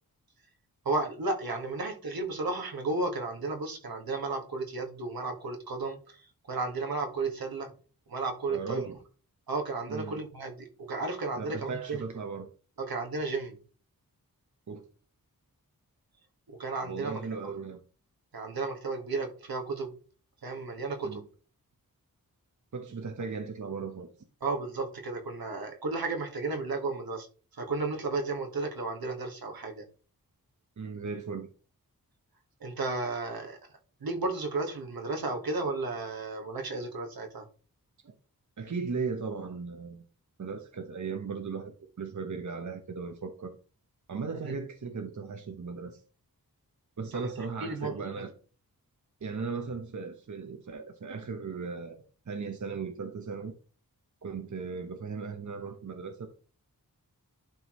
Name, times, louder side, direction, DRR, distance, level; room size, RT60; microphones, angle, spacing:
voice 1, 0.9-7.7 8.1-8.8 9.5-12.0 12.8-13.6 16.5-17.5 18.3-19.9 20.4-21.2 24.4-27.3 27.5-29.8 32.6-33.6 34.0-37.4 44.4-44.6 47.1-47.9, right 3 dB, 80° right, 2 dB, 1.9 m, -33 dB
voice 2, 8.5-9.0 9.9-10.2 11.4-12.5 14.7-14.8 16.8-17.8 21.0-21.2 22.7-24.1 30.8-31.5 38.0-38.1 38.6-40.0 40.4-43.6 44.1-46.0 47.0-48.3 49.2-53.5 54.2-56.3, right 5 dB, 55° right, 5 dB, 1.1 m, -37 dB
11.5 x 4.7 x 3.1 m, 0.38 s
wide cardioid pair, 115°, 35 cm